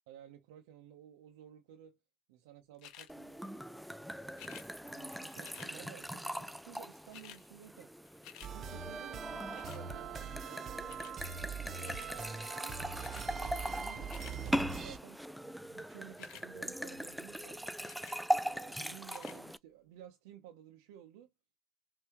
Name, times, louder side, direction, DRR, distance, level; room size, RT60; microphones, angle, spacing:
voice 1, 0.1-2.0 2.3-3.4 4.2-7.9 8.5-11.0 11.5-12.9 13.2-18.0 18.4-21.3, right 11 dB, 85° right, 0.7 m, -55 dB
sound 1, 2.8-3.1 4.3-4.7 5.4-5.7 6.7-6.8 6.9-7.4 7.8-8.5 9.5-9.8 10.9-11.2 11.8-12.1 13.0-13.3 13.9-14.4 16.1-16.5 17.8-18.2 19.0-19.4 20.0-20.1, left 11 dB, 70° left, 0.8 m, -53 dB
sound 2, 3.1-19.6, equal, ahead, 0.4 m, -40 dB
sound 3, 8.4-15.0, right 7 dB, 50° right, 0.8 m, -43 dB
5.7 x 2.7 x 2.9 m
supercardioid pair, 75°, 0 cm